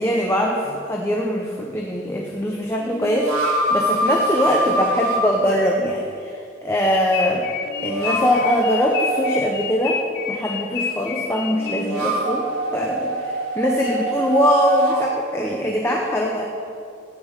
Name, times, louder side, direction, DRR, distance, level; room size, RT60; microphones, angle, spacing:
voice 1, 0.0-7.5 7.8-10.0 10.3-12.5 12.7-16.4, left 1 dB, 10° left, -1 dB, 0.8 m, -22 dB
sound 1, 0.6-0.8 2.8-5.2 7.6-9.4 11.5-15.1, right 2 dB, 90° right, 2.3 m, -24 dB
sound 2, 6.8-12.1, left 7 dB, 50° left, 0.7 m, -29 dB
15.5 x 9.5 x 4.9 m, 2.5 s
head